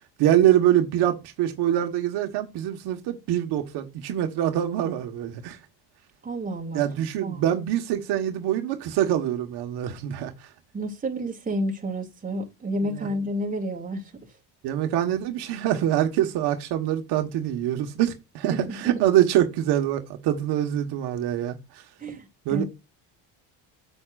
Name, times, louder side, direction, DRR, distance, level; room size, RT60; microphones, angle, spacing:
voice 1, 0.2-5.6 6.7-10.3 12.9-13.1 14.6-21.8 22.4-22.6, right 11 dB, 65° right, 1.5 m, -24 dB
voice 2, 6.2-6.8 7.2-7.4 10.7-14.0 18.5-19.1 22.0-22.6, right 1 dB, 20° right, 2.5 m, -30 dB
8.6 x 7.9 x 2.5 m
cardioid pair, 115°, 42 cm